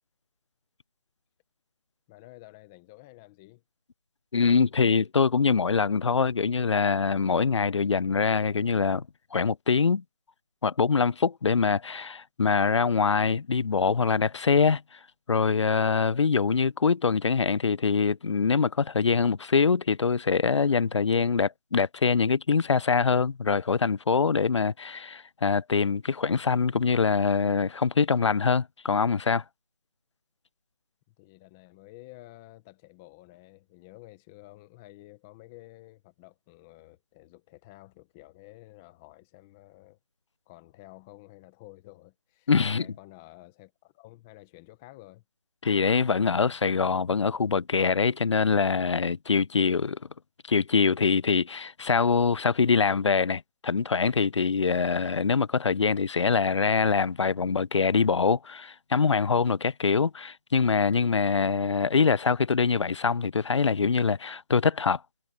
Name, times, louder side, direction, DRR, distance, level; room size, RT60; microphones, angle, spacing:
voice 1, 2.1-3.6 31.1-40.0 40.5-45.2, left 18 dB, 5° left, 0.5 m, -51 dB
voice 2, 4.3-9.1 9.3-10.0 10.6-14.8 15.3-29.4 42.5-42.8 45.6-50.0 50.5-65.0, left 5 dB, 80° left, 0.5 m, -24 dB
figure-of-eight pair, 170°, 15 cm